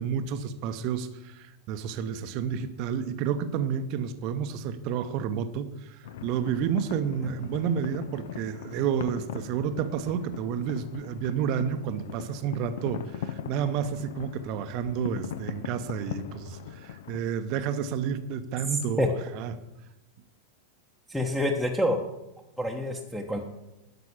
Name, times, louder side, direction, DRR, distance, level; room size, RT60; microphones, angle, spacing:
voice 1, 0.0-19.5, right 8 dB, 40° right, 11 dB, 0.8 m, -30 dB
sound 1, 6.0-17.2, left 9 dB, 55° left, 0.6 m, -40 dB
voice 2, 21.1-22.0 22.6-23.4, left 1 dB, ahead, 1 dB, 1.1 m, -27 dB
12.0 x 6.1 x 7.3 m, 0.96 s
figure-of-eight pair, 90°, 0 cm